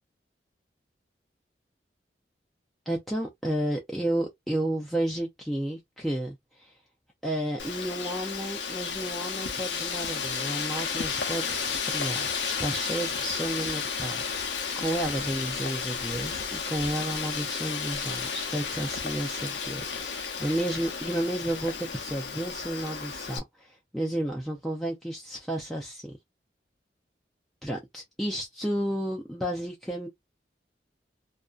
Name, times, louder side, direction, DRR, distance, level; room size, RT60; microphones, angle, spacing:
voice 1, 2.9-6.7 7.2-26.2 27.6-30.1, right 1 dB, ahead, 0.4 m, -32 dB
Wind, 7.6-23.4, left 6 dB, 75° left, 0.6 m, -33 dB
2.5 x 2.2 x 2.3 m
head